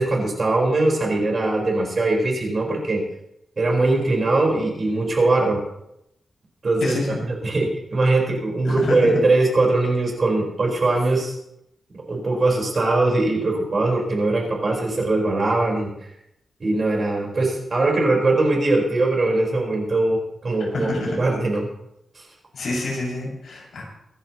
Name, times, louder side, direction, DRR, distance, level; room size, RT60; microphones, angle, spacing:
voice 1, 0.0-3.0 3.6-5.6 6.6-7.0 7.4-11.4 12.1-16.1 16.6-20.9 21.2-21.7 22.1-22.2, right 2 dB, 35° right, -1 dB, 4.7 m, -21 dB
voice 2, 6.8-7.2 8.6-9.1 20.7-21.2 22.5-23.8, left 2 dB, 65° left, -3 dB, 6.3 m, -27 dB
25.5 x 11.0 x 3.1 m, 0.81 s
wide cardioid pair, 160°, 0 cm